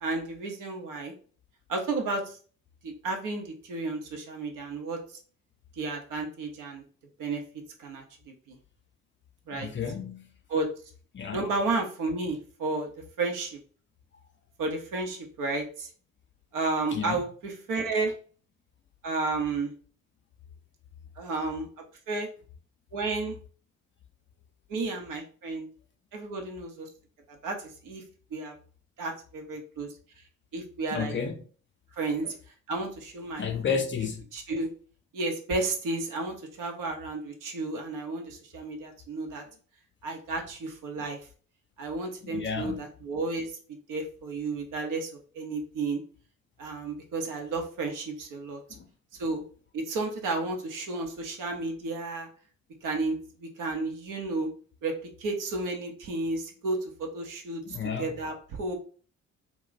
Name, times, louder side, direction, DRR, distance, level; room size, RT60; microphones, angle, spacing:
voice 1, 0.0-1.1 1.7-2.4 2.8-5.0 5.8-6.8 7.2-7.4 7.8-8.6 9.5-9.7 10.5-10.7 11.3-12.9 13.2-13.6 14.6-15.9 16.5-18.1 19.0-19.7 21.2-21.7 22.1-22.3 22.9-23.4 24.7-25.7 26.1-26.9 27.4-28.0 28.3-28.6 29.0-29.9 30.5-31.1 32.0-32.2 32.7-33.8 34.3-34.7 35.1-39.4 40.0-41.2 41.8-43.6 43.9-45.1 45.3-46.0 46.6-48.6 49.2-49.4 49.7-52.3 52.8-54.5 54.8-58.7, right 3 dB, 55° right, 0.9 m, -32 dB
voice 2, 9.5-10.3 11.1-11.4 16.9-17.2 30.9-31.3 33.4-34.2 42.2-42.8 48.7-48.8 57.6-58.1, left 6 dB, 30° left, 0.6 m, -32 dB
2.4 x 2.3 x 3.8 m
hypercardioid pair, 50°, 38 cm